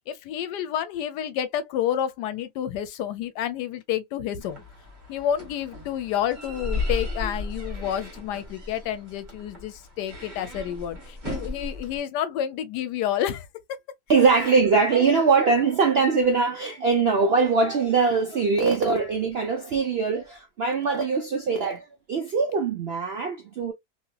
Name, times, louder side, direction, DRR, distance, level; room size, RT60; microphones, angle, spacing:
voice 1, 0.0-4.6 5.1-13.5, left 10 dB, 80° left, 1.2 m, -29 dB
sound 1, 4.4-12.0, left 2 dB, 30° right, 1.5 m, -35 dB
voice 2, 14.1-23.7, right 4 dB, 70° right, 0.6 m, -22 dB
2.9 x 2.8 x 2.2 m
omnidirectional pair, 1.8 m